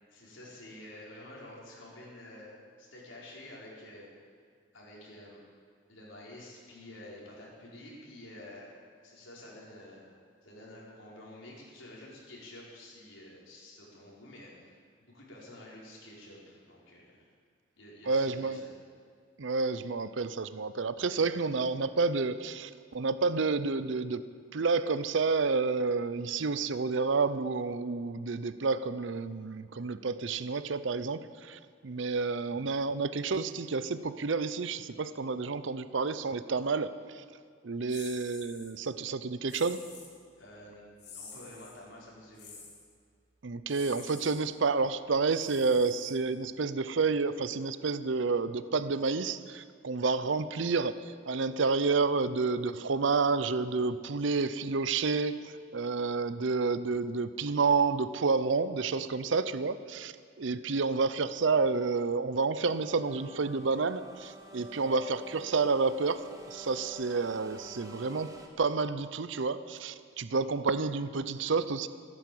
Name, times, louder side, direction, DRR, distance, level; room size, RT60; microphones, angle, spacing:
voice 1, 0.1-2.5 2.8-4.1 4.7-5.4 5.9-8.7 9.0-10.0 10.4-17.3 17.8-18.7 40.4-42.6, left 1 dB, 80° left, -4 dB, 4.6 m, -49 dB
voice 2, 18.1-18.6 19.4-24.2 24.5-37.2 37.6-39.8 43.4-71.9, right 4 dB, 70° right, 14 dB, 0.6 m, -30 dB
sound 1, 37.9-38.7 39.5-40.2 41.0-41.8 42.4-42.9 43.7-44.4 45.3-46.5, left 4 dB, 60° left, 3.4 m, -49 dB
sound 2, 62.6-68.5, right 2 dB, 20° right, 1.3 m, -49 dB
17.0 x 9.9 x 8.6 m, 2.1 s
head